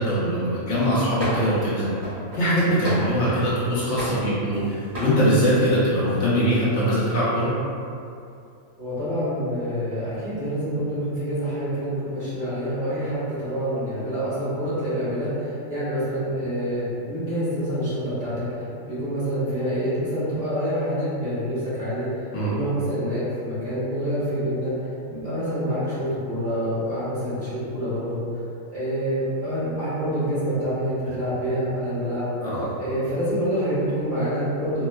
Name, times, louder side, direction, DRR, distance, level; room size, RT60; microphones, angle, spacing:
voice 1, 0.0-1.9 2.3-7.5 22.3-22.5 32.4-32.7, equal, 65° left, -9 dB, 1.0 m, -22 dB
sound 1, 1.2-1.6 2.0-3.5 4.0-4.6 4.9-5.2, left 1 dB, 70° right, 1.9 m, -32 dB
voice 2, 8.8-24.7 25.1-28.2 28.7-32.3 32.8-34.9, equal, 50° right, -13 dB, 1.4 m, -27 dB
4.2 x 2.1 x 2.2 m, 2.5 s
omnidirectional pair, 1.4 m